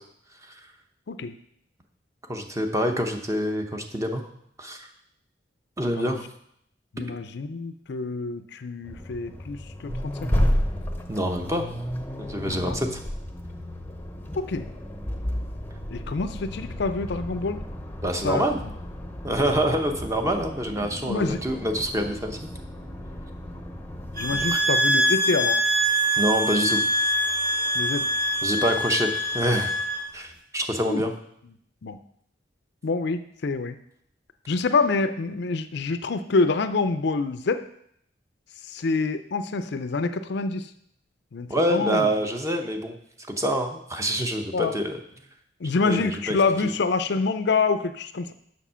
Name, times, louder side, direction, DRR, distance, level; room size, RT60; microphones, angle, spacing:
voice 1, 2.3-4.2 4.6-4.8 5.8-6.2 11.1-11.7 12.2-13.0 18.0-18.6 19.2-22.4 24.5-24.6 26.2-26.8 28.4-29.7 30.1-31.1 41.5-43.0 43.3-45.0 45.8-46.4, equal, 15° right, 4 dB, 0.9 m, -26 dB
voice 2, 6.9-10.4 12.5-12.8 14.4-14.7 15.9-17.6 18.2-18.7 20.9-21.4 24.2-25.6 27.7-28.1 30.9-31.0 31.8-32.0 32.8-33.8 34.5-37.7 38.7-40.7 41.3-42.1 44.5-44.7 45.6-48.3, left 4 dB, 65° left, 10 dB, 0.5 m, -26 dB
Accelerating revving vroom, 8.8-24.6, equal, 10° left, 0.8 m, -32 dB
sound 1, 24.2-30.0, right 1 dB, 55° right, 2.9 m, -24 dB
7.3 x 6.3 x 5.6 m, 0.71 s
head